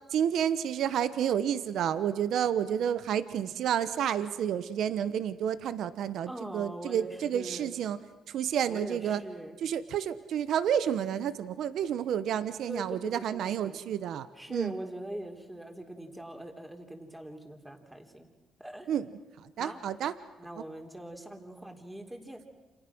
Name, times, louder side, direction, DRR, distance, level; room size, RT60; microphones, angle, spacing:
voice 1, 0.1-8.0 8.3-9.2 9.6-14.8 18.9-19.1 19.4-20.1, right 9 dB, 75° right, 14 dB, 1.0 m, -30 dB
voice 2, 6.3-7.7 8.6-9.6 12.7-13.8 14.4-18.3 18.6-18.9 19.6-19.8 20.4-22.4, right 1 dB, 10° right, 3 dB, 3.8 m, -42 dB
30.0 x 27.5 x 6.2 m, 1.2 s
cardioid pair, 90°, 0 cm